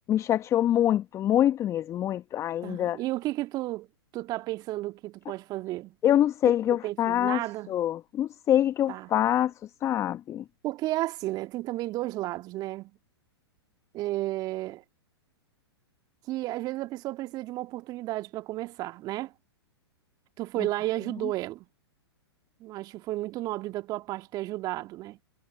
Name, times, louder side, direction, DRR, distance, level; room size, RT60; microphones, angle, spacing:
voice 1, 0.1-3.0 6.0-7.4 7.7-10.4, left 11 dB, 20° left, 1.0 m, -25 dB
voice 2, 2.6-3.9 4.1-5.9 6.7-7.7 8.9-9.1 10.6-12.9 13.9-14.8 16.3-19.3 20.4-21.7 22.6-25.2, right 17 dB, 30° right, 1.8 m, -33 dB
figure-of-eight pair, 110°, 14 cm